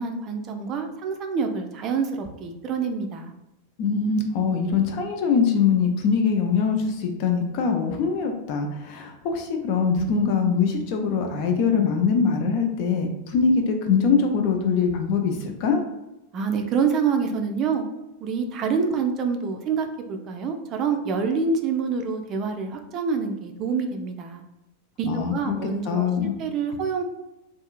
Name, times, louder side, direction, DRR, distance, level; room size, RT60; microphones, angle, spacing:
voice 1, 0.0-3.3 16.3-17.8 18.2-24.4 25.0-26.1 26.4-27.0, right 5 dB, 35° right, 5 dB, 0.4 m, -26 dB
voice 2, 3.8-15.8 25.0-25.5 25.9-26.3, left 5 dB, 45° left, 4 dB, 0.5 m, -23 dB
2.6 x 2.4 x 2.4 m, 0.94 s
figure-of-eight pair, 90°, 0 cm